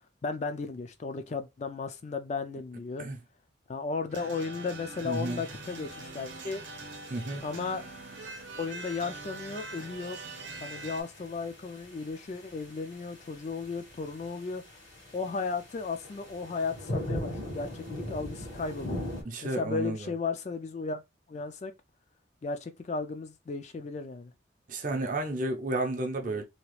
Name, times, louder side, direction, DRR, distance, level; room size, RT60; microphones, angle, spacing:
voice 1, 0.2-3.1 3.7-6.6 7.4-7.8 8.6-10.2 10.6-14.6 15.1-19.0 19.4-21.0 21.3-21.7 22.4-24.3 26.2-26.4, left 4 dB, 35° left, 0.3 m, -35 dB
sound 1, 4.1-11.0, right 3 dB, 80° right, 0.7 m, -43 dB
sound 2, 4.9-19.2, left 1 dB, 75° left, 1.3 m, -42 dB
voice 2, 5.0-5.4 7.1-7.4 19.2-20.1 24.7-26.4, right 2 dB, 45° right, 0.6 m, -32 dB
2.9 x 2.3 x 3.0 m
head